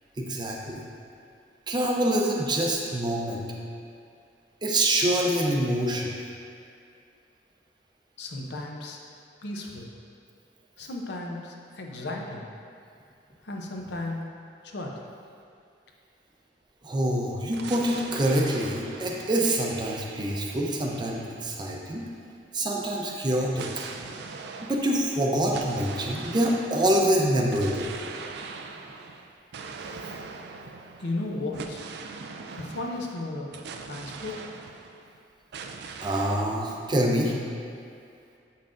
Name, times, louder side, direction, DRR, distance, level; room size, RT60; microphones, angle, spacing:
voice 1, 0.2-0.8 1.7-3.4 4.6-6.1 16.8-22.0 22.5-23.8 24.6-27.9 36.0-37.3, right 1 dB, 25° right, -1 dB, 0.6 m, -26 dB
voice 2, 8.2-9.0 9.4-9.9 10.8-12.5 13.4-14.2 14.6-14.9 31.0-31.8 32.3-34.5, left 2 dB, 65° left, 0 dB, 0.7 m, -35 dB
sound 1, 17.5-22.2 23.5-35.2 35.5-36.6, right 4 dB, 65° right, 0.4 m, -42 dB
7.3 x 5.5 x 2.5 m, 2.4 s
head